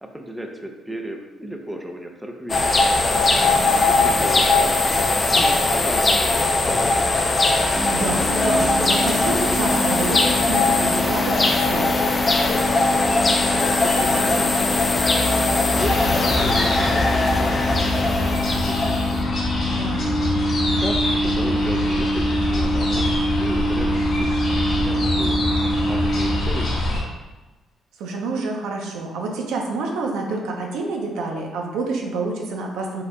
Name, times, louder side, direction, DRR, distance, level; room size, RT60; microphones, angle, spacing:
voice 1, 0.0-2.7 3.7-5.1 5.7-7.2 13.4-14.9 15.6-19.4 20.6-23.1 23.4-24.3 24.8-25.4 25.8-27.0, right 1 dB, 10° right, 3 dB, 0.6 m, -34 dB
sound 1, 2.5-19.2, left 2 dB, 30° left, 0.5 m, -20 dB
voice 2, 3.5-4.1 7.9-11.9 19.7-20.2 28.0-33.0, right 3 dB, 90° right, 1 dB, 0.7 m, -28 dB
sound 2, 7.7-26.3, left 1 dB, 50° right, 1.3 m, -26 dB
sound 3, 15.8-27.0, left 2 dB, 55° left, 1.3 m, -25 dB
5.3 x 3.8 x 2.3 m, 1.2 s
cardioid pair, 90°, 0 cm